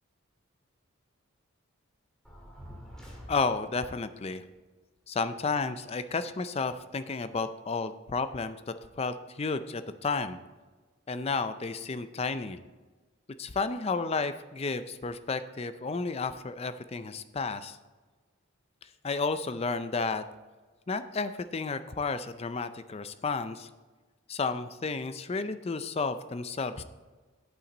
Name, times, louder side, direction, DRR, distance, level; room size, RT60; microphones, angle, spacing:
sound 1, 2.2-3.9, equal, 5° left, 1.8 m, -47 dB
voice 1, 3.3-4.4 5.1-10.4 11.1-12.6 13.4-17.8 19.0-20.2 20.9-23.7 24.3-26.8, left 4 dB, 30° left, 11 dB, 0.4 m, -32 dB
8.7 x 8.4 x 3.9 m, 1.3 s
head